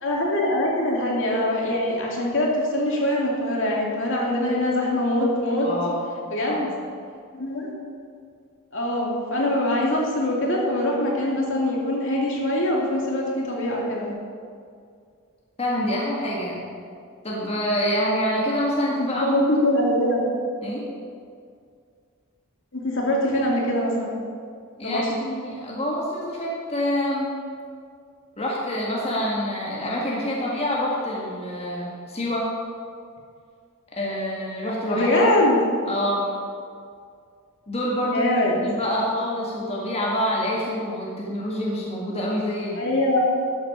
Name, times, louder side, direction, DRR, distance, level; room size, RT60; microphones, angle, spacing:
voice 1, 0.0-5.7 6.3-6.7 7.3-7.7 8.7-14.1 19.0-20.2 22.7-24.1 24.8-25.1 34.9-35.6 38.1-38.6 42.8-43.2, left 1 dB, 60° left, -2 dB, 2.4 m, -23 dB
voice 2, 5.6-6.0 6.5-6.7 15.6-16.6 17.2-19.4 20.6-20.8 24.8-27.3 28.4-32.5 33.9-35.1 35.9-36.3 37.7-38.3 38.6-42.9, equal, 30° left, -4 dB, 1.7 m, -26 dB
12.0 x 8.0 x 5.7 m, 2.2 s
head